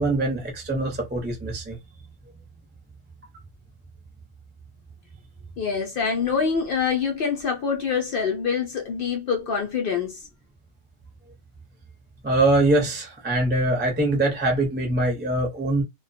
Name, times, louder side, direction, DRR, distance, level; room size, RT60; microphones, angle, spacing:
voice 1, 0.0-1.8 12.2-15.8, right 2 dB, 10° right, 0.5 m, -23 dB
voice 2, 5.6-10.2, left 6 dB, 70° left, 0.5 m, -25 dB
2.3 x 2.2 x 2.6 m
omnidirectional pair, 1.5 m